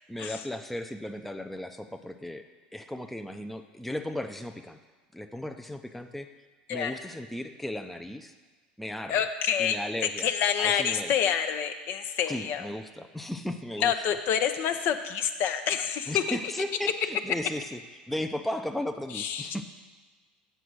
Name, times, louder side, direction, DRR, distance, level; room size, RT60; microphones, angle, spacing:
voice 1, 0.1-2.4 2.7-4.8 5.1-6.3 6.7-8.3 8.8-9.2 9.6-10.3 10.6-11.1 12.3-14.2 16.1-17.8 18.1-19.6, left 1 dB, 5° left, 6 dB, 0.5 m, -35 dB
voice 2, 9.1-9.8 10.2-12.7 13.8-16.4 19.1-19.6, left 8 dB, 55° left, 8 dB, 0.6 m, -27 dB
8.0 x 4.9 x 6.2 m, 1.4 s
hypercardioid pair, 85°, 5 cm